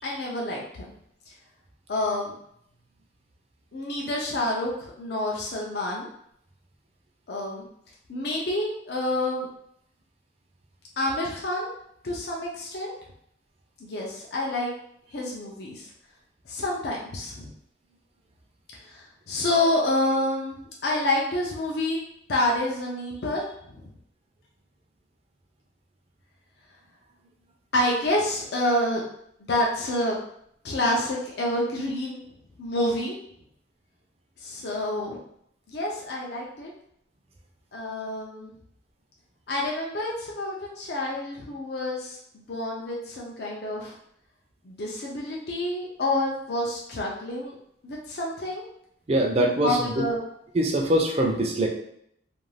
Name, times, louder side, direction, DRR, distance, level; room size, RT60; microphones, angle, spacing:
voice 1, 0.0-0.9 1.9-2.3 3.7-6.1 7.3-7.6 8.1-9.5 11.0-11.7 12.0-12.9 13.8-14.7 15.1-15.9 16.5-17.5 18.7-22.0 22.3-23.9 27.7-29.0 29.5-30.2 30.6-32.2 32.6-33.2 34.4-35.2 35.7-36.7 37.7-38.5 39.5-44.0 44.6-47.6 47.8-48.6 49.6-50.2, left 1 dB, 55° left, -2 dB, 0.5 m, -28 dB
voice 2, 49.1-49.9 50.5-51.7, right 1 dB, 30° right, 1 dB, 0.4 m, -23 dB
2.5 x 2.3 x 3.2 m, 0.70 s
head